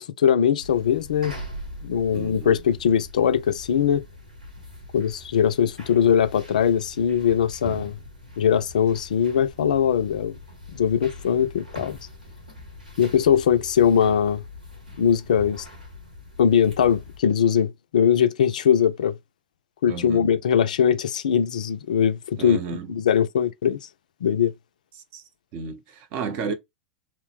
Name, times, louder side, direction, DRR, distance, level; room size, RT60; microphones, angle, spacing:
voice 1, 0.0-1.4 1.8-4.0 4.9-8.0 8.4-10.4 10.7-12.0 13.0-14.4 15.0-15.6 16.4-19.2 19.8-22.6 22.9-23.8 24.2-24.5, left 8 dB, 70° left, 0.3 m, -21 dB
sound 1, 0.6-17.2, left 1 dB, 90° right, 1.3 m, -42 dB
voice 2, 2.1-2.6 19.9-20.3 22.4-22.9 25.0-25.2 25.5-26.5, right 5 dB, 45° right, 0.6 m, -32 dB
3.0 x 2.0 x 3.0 m
figure-of-eight pair, 90°, 4 cm